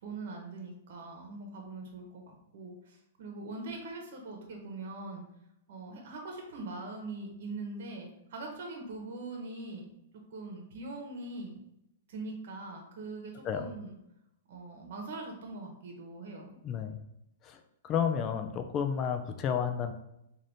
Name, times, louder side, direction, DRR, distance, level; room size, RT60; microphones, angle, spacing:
voice 1, 0.0-2.2 2.5-5.2 5.7-9.9 10.3-11.6 12.1-14.0 14.5-16.5, right 2 dB, 60° right, 2 dB, 1.0 m, -42 dB
voice 2, 16.6-17.0 17.4-19.9, left 7 dB, 25° left, 7 dB, 0.3 m, -31 dB
3.3 x 2.6 x 4.0 m, 0.83 s
hypercardioid pair, 150°, 0 cm